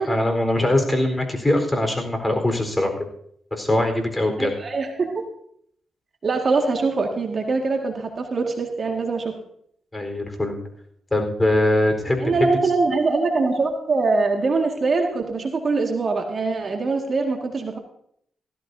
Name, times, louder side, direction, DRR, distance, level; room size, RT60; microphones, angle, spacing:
voice 1, 0.1-3.0 3.5-4.5 9.9-10.5 11.1-12.5, left 1 dB, 20° left, 5 dB, 4.2 m, -22 dB
voice 2, 4.4-5.2 6.2-9.3 12.2-17.8, right 3 dB, 50° right, 3 dB, 2.0 m, -23 dB
16.5 x 14.0 x 2.7 m, 0.69 s
supercardioid pair, 50°, 0 cm